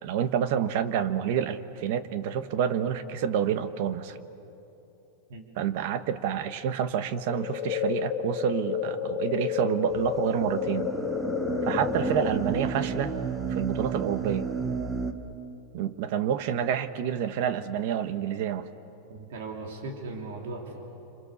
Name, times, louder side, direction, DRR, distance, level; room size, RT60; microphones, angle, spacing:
voice 1, 0.0-4.2 5.6-10.9 11.6-13.1 13.5-14.5 15.7-18.7, right 9 dB, 45° right, 12 dB, 1.0 m, -28 dB
sound 1, 7.3-12.3, left 9 dB, 25° left, 1.1 m, -31 dB
sound 2, 9.9-15.1, right 5 dB, 10° right, 0.9 m, -32 dB
voice 2, 19.1-20.8, right 3 dB, 65° right, 2 dB, 3.4 m, -38 dB
28.0 x 26.5 x 7.0 m, 3.0 s
supercardioid pair, 180°, 0 cm